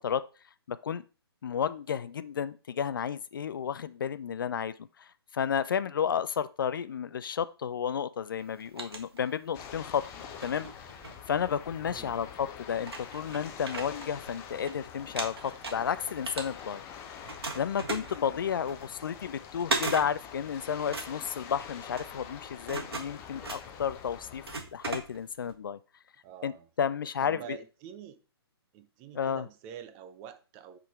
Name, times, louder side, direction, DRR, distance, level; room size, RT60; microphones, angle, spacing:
voice 1, 0.7-1.0 1.4-4.7 5.0-5.1 5.3-10.0 10.4-10.7 11.3-16.8 17.5-24.4 24.7-25.8 26.4-26.5 26.8-27.6 29.1-29.4, left 8 dB, 55° left, 0.4 m, -32 dB
sound 1, 8.4-9.7 10.2-11.8 12.4-12.5 12.8-14.7 15.0-16.9 17.2-25.5, right 3 dB, 70° right, 1.6 m, -38 dB
sound 2, 9.5-24.6, left 8 dB, 20° left, 0.7 m, -46 dB
voice 2, 11.8-12.2 26.2-28.2 28.7-30.8, right 9 dB, 20° right, 0.5 m, -47 dB
5.7 x 3.8 x 4.6 m
figure-of-eight pair, 135°, 13 cm